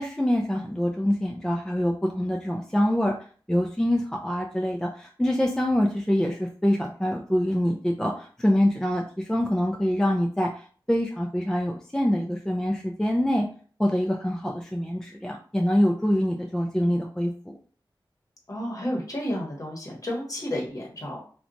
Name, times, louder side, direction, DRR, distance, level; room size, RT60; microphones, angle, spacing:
voice 1, 0.0-3.1 3.5-10.5 10.9-13.5 13.8-17.5, equal, 5° left, 1 dB, 0.3 m, -25 dB
voice 2, 18.5-21.2, left 1 dB, 45° left, -2 dB, 0.9 m, -31 dB
2.8 x 2.2 x 2.5 m, 0.43 s
wide cardioid pair, 75°, 8 cm